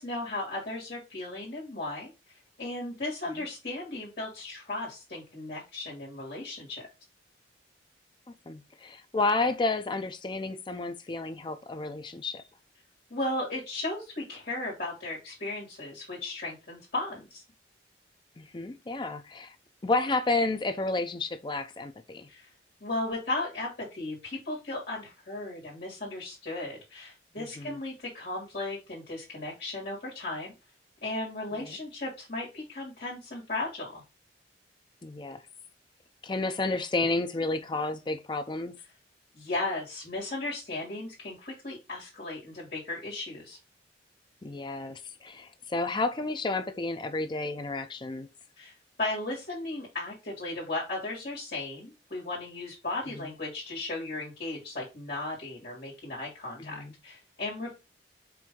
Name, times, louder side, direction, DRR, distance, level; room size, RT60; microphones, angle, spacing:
voice 1, 0.0-2.1 2.6-6.8 13.1-17.4 22.3-22.5 22.8-30.5 31.0-34.0 39.3-43.6 48.6-48.7 49.0-57.7, left 2 dB, 55° left, 1.8 m, -36 dB
voice 2, 8.5-12.4 18.4-19.5 19.8-22.3 27.4-27.8 31.5-31.8 35.0-35.4 36.2-38.7 44.4-48.3 53.1-53.3 56.6-56.9, left 3 dB, 25° left, 0.4 m, -31 dB
4.6 x 2.6 x 3.5 m
head